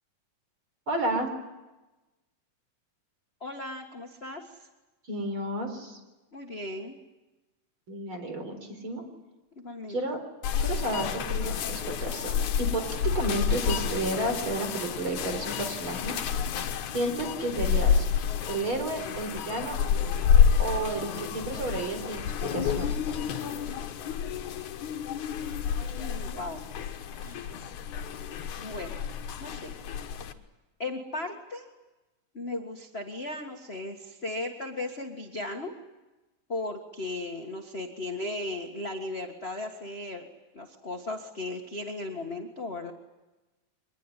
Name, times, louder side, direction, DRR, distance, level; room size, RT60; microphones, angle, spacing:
voice 1, 0.9-1.3 5.1-6.0 7.9-9.0 9.9-10.2 10.6-12.3 12.6-16.2 16.9-18.1 18.5-19.8 20.6-23.0, right 2 dB, 35° right, 5 dB, 4.9 m, -32 dB
voice 2, 3.4-4.6 6.3-7.0 9.6-10.2 26.0-26.6 27.2-27.5 28.6-29.0 29.4-29.7 30.8-31.7 32.3-35.7 36.5-40.2 40.5-42.9, left 2 dB, 35° left, 2 dB, 1.0 m, -36 dB
sound 1, 10.4-30.3, left 7 dB, 65° left, 2.5 m, -29 dB
24.0 x 21.0 x 9.9 m, 1.1 s
omnidirectional pair, 4.0 m